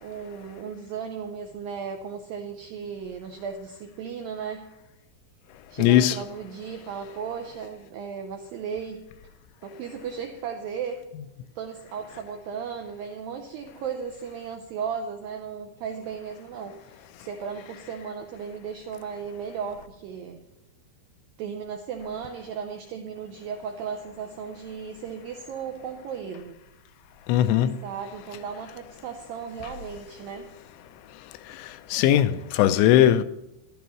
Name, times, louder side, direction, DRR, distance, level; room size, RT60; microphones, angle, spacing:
voice 1, 0.0-4.7 5.7-9.0 9.6-11.0 11.6-20.4 21.4-26.6 27.8-30.5, right 6 dB, 90° right, 2.0 m, -35 dB
voice 2, 5.8-6.1 27.3-27.7 31.9-33.2, left 12 dB, 90° left, 2.9 m, -19 dB
14.0 x 11.5 x 3.1 m
omnidirectional pair, 5.1 m